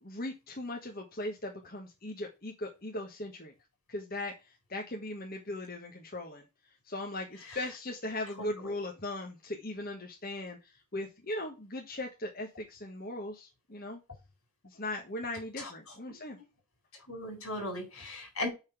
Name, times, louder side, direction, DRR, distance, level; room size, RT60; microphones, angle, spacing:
voice 1, 0.0-3.5 3.9-6.4 6.8-14.0 14.6-16.4, left 1 dB, 45° left, 1.4 m, -39 dB
voice 2, 8.4-8.7 15.6-15.7 16.1-16.2 17.1-18.5, left 1 dB, 80° left, 4.2 m, -38 dB
8.5 x 4.1 x 5.9 m
head